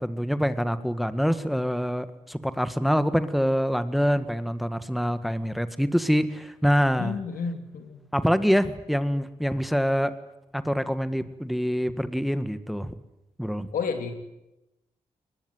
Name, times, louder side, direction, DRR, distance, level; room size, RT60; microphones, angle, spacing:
voice 1, 0.0-7.1 8.1-10.1 10.5-12.9 13.4-13.7, equal, ahead, 12 dB, 1.7 m, -25 dB
voice 2, 7.0-8.0 13.7-14.1, left 5 dB, 80° left, 6 dB, 3.0 m, -31 dB
22.0 x 19.5 x 9.6 m, 0.92 s
supercardioid pair, 40°, 14 cm